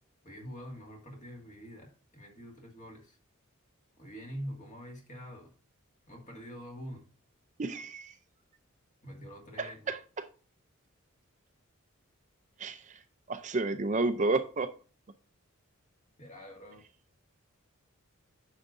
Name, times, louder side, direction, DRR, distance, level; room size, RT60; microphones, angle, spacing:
voice 1, 0.2-3.2 4.0-5.5 6.1-7.1 9.0-9.9 16.2-16.9, equal, 35° left, 2 dB, 2.1 m, -45 dB
voice 2, 7.6-8.1 9.6-10.3 12.6-13.0 13.3-14.7, right 3 dB, 35° right, 9 dB, 0.5 m, -31 dB
9.7 x 6.5 x 2.6 m, 0.37 s
head